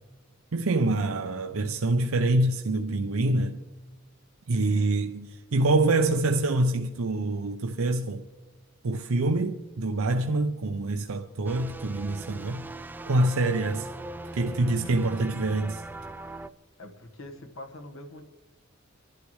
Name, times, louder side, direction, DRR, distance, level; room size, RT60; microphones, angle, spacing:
voice 1, 0.5-3.6 4.5-8.2 8.8-12.6 13.1-13.9 14.3-15.8, right 2 dB, 85° right, 0.6 m, -26 dB
voice 2, 4.6-4.9 16.8-18.2, left 1 dB, 75° left, 1.4 m, -44 dB
sound 1, 11.4-16.5, right 2 dB, 10° right, 0.3 m, -40 dB
25.5 x 11.5 x 3.2 m
head